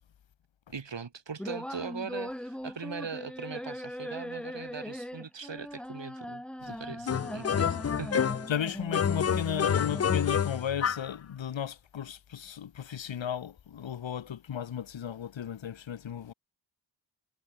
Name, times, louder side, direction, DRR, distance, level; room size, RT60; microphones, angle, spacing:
voice 1, 0.7-8.3, right 5 dB, 65° right, 4.5 m, -41 dB
sound 1, 1.4-10.4, equal, ahead, 0.7 m, -40 dB
sound 2, 7.1-8.6 8.9-11.1, left 8 dB, 35° left, 0.4 m, -28 dB
voice 2, 8.5-16.3, left 9 dB, 75° left, 1.2 m, -35 dB
cardioid pair, 50°, 46 cm